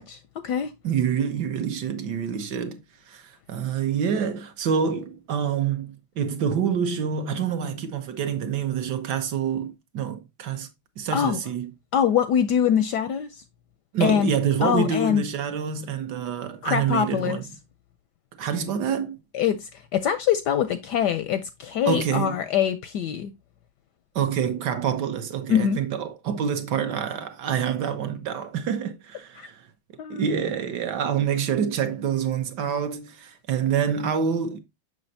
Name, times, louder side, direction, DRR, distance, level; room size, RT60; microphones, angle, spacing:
voice 1, 0.0-0.7 11.1-11.4 11.9-13.4 14.0-14.3 14.6-15.2 16.6-17.4 19.3-23.3 25.5-25.8 29.4-29.5 30.0-30.3, left 8 dB, 75° left, 1.0 m, -24 dB
voice 2, 0.8-2.8 3.1-10.7 11.0-11.7 13.9-17.4 18.4-19.2 21.9-22.4 24.1-29.6 30.1-34.6, right 7 dB, 65° right, 1.3 m, -27 dB
6.4 x 6.3 x 2.6 m
omnidirectional pair, 2.2 m